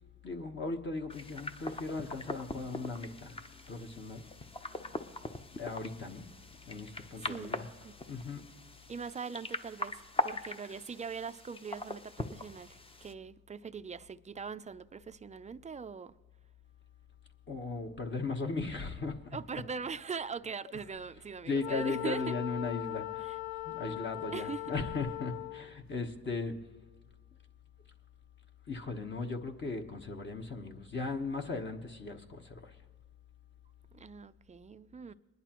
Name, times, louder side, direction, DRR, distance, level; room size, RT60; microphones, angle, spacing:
voice 1, 0.2-3.4 3.7-4.2 4.7-5.2 5.5-6.3 6.7-7.7 8.1-8.4 17.5-19.4 21.4-23.3 23.6-26.5 28.7-32.7, left 3 dB, 40° left, 1.2 m, -37 dB
sound 1, 1.1-13.1, left 2 dB, 20° left, 0.7 m, -41 dB
voice 2, 7.2-8.0 8.9-16.1 19.3-22.2 23.2-23.4 24.3-24.8 33.9-35.1, right 5 dB, 25° right, 0.4 m, -42 dB
Wind instrument woodwind instrument, 21.6-25.8, left 15 dB, 65° left, 0.5 m, -39 dB
21.5 x 11.0 x 3.0 m
cardioid pair, 90°, 30 cm